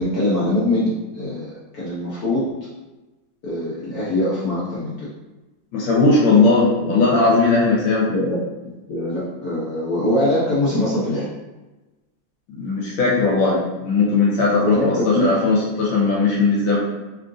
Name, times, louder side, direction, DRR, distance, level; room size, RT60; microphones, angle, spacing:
voice 1, 0.0-1.5 1.7-2.5 3.4-5.1 6.8-7.0 8.1-11.3 14.6-15.3, left 1 dB, 60° left, -9 dB, 1.1 m, -23 dB
voice 2, 5.7-8.1 12.6-16.8, left 3 dB, 80° left, -4 dB, 1.5 m, -18 dB
3.6 x 2.4 x 2.5 m, 1.1 s
omnidirectional pair, 2.1 m